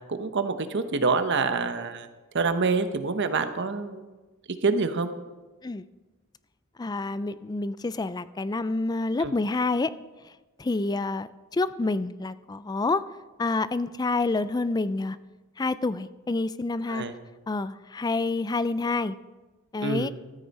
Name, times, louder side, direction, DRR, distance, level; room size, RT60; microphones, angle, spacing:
voice 1, 0.1-2.1 2.3-4.0 4.6-5.1 9.2-9.3 16.9-17.1 19.8-20.1, right 4 dB, 60° right, 9 dB, 0.9 m, -26 dB
voice 2, 6.8-9.9 10.6-13.1 13.4-15.2 15.6-17.0 17.5-19.2 19.7-20.1, left 3 dB, 20° left, 15 dB, 0.4 m, -28 dB
14.0 x 13.0 x 4.2 m, 1.2 s
head